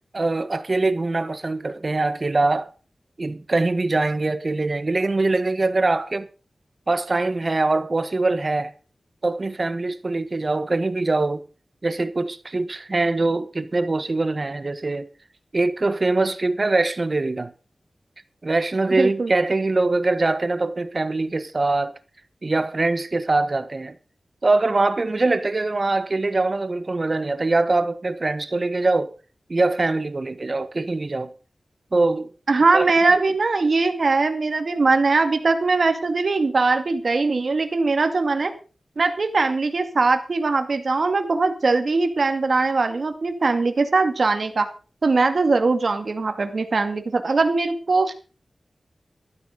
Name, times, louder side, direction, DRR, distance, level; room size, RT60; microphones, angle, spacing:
voice 1, 0.1-2.7 3.2-6.3 6.9-8.7 9.2-11.4 11.8-15.1 15.5-17.5 18.4-21.9 22.4-24.0 24.4-29.1 29.5-31.3 31.9-32.3 32.7-32.9, right 2 dB, 45° right, 1.5 m, -23 dB
voice 2, 18.9-19.3 32.5-38.5 39.0-44.7 45.0-48.1, right 3 dB, 70° right, 2.3 m, -21 dB
13.5 x 12.5 x 5.2 m
wide cardioid pair, 70°, 0 cm